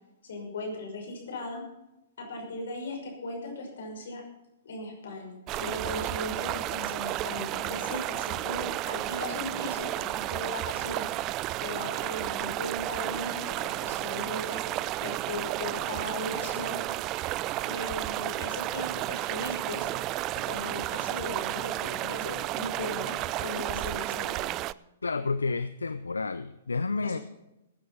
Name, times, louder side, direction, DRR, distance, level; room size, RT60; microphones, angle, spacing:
voice 1, 0.2-1.6 2.2-4.2 4.6-11.2 11.6-14.6 15.0-16.8 17.6-19.9 20.3-24.5 27.0-27.2, left 2 dB, 65° left, 1 dB, 5.9 m, -38 dB
sound 1, 5.5-24.7, right 16 dB, 35° right, 0.4 m, -32 dB
voice 2, 25.0-27.2, left 4 dB, 85° left, 13 dB, 0.6 m, -30 dB
16.5 x 9.5 x 5.5 m, 0.91 s
figure-of-eight pair, 115°, 0 cm